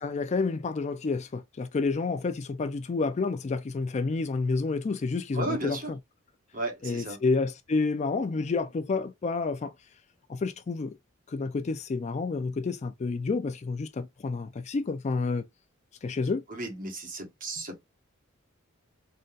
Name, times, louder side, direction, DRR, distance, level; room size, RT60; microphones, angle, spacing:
voice 1, 0.0-6.0 6.8-9.7 10.3-11.0 11.3-15.5 16.0-16.4, left 4 dB, 35° left, 0.4 m, -29 dB
voice 2, 5.3-5.9 6.5-7.2 16.5-17.8, right 2 dB, 40° right, 1.4 m, -34 dB
3.9 x 2.2 x 3.8 m
head